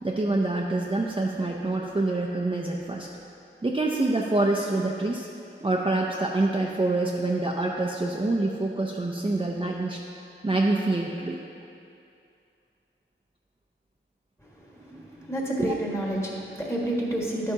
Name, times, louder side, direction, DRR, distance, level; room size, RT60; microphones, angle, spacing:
voice 1, 0.0-3.1 3.6-5.3 5.6-10.0 10.4-11.4 14.8-15.1 15.6-15.8, right 2 dB, 25° right, -2 dB, 0.6 m, -26 dB
voice 2, 15.2-17.5, right 1 dB, 15° left, -3 dB, 1.6 m, -29 dB
11.0 x 8.2 x 2.8 m, 2.5 s
wide cardioid pair, 70°, 21 cm